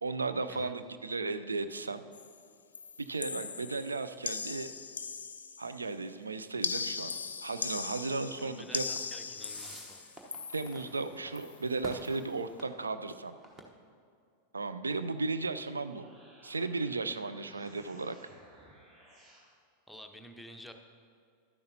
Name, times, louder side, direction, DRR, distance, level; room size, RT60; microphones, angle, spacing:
voice 1, 0.0-2.0 3.0-4.7 5.6-7.1 7.4-8.9 10.5-13.3 14.5-16.1 16.4-18.2, right 3 dB, 75° right, 11 dB, 0.4 m, -35 dB
sound 1, 2.1-2.4 2.7-5.8 6.6-11.0 11.4-11.6 11.9-12.2, left 5 dB, 70° left, 0.5 m, -39 dB
voice 2, 8.4-10.0 19.9-20.7, left 1 dB, 5° left, 4 dB, 0.7 m, -50 dB
sound 2, 8.4-13.6, right 1 dB, 20° right, 1.1 m, -50 dB
sound 3, 15.7-19.5, right 1 dB, 35° right, 2.3 m, -58 dB
12.0 x 10.5 x 2.8 m, 2.3 s
figure-of-eight pair, 90°, 0 cm